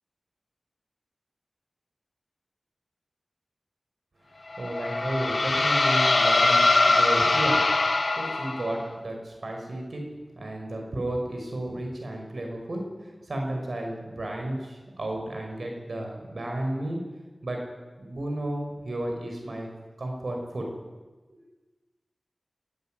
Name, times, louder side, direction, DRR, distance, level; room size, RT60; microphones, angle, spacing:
voice 1, 4.3-7.7 8.2-10.0 10.3-12.8 13.2-17.0 17.4-17.6 18.0-19.7 20.0-20.7 21.3-21.4, right 1 dB, 75° right, 2 dB, 6.2 m, -33 dB
sound 1, 4.5-8.8, left 2 dB, 60° left, 2.2 m, -22 dB
23.0 x 14.5 x 9.4 m, 1.2 s
wide cardioid pair, 60°, 0 cm